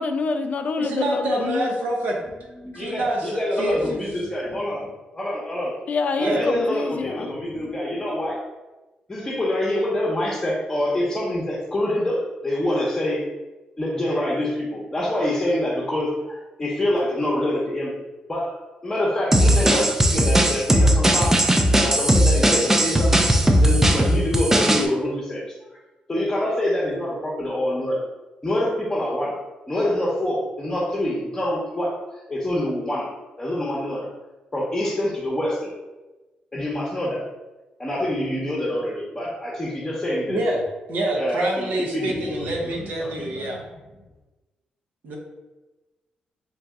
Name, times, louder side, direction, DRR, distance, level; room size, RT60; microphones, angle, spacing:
voice 1, 0.0-1.8 5.9-7.3, left 4 dB, 55° left, 8 dB, 0.3 m, -26 dB
voice 2, 0.8-2.2 2.7-4.0 6.2-6.5 40.3-40.6 40.9-43.6 45.0-45.2, right 1 dB, 75° right, -1 dB, 0.9 m, -26 dB
voice 3, 2.6-5.7 6.2-8.4 9.1-13.2 13.8-17.9 18.3-21.4 21.8-25.4 26.1-28.0 28.4-29.4 29.7-34.1 34.5-35.8 36.5-37.2 37.8-40.4 41.2-42.9 43.2-43.6, left 1 dB, 20° left, -6 dB, 0.8 m, -26 dB
sound 1, 19.3-24.9, right 1 dB, 15° right, 0.4 m, -18 dB
3.0 x 2.6 x 3.5 m, 1.1 s
cardioid pair, 75°, 3 cm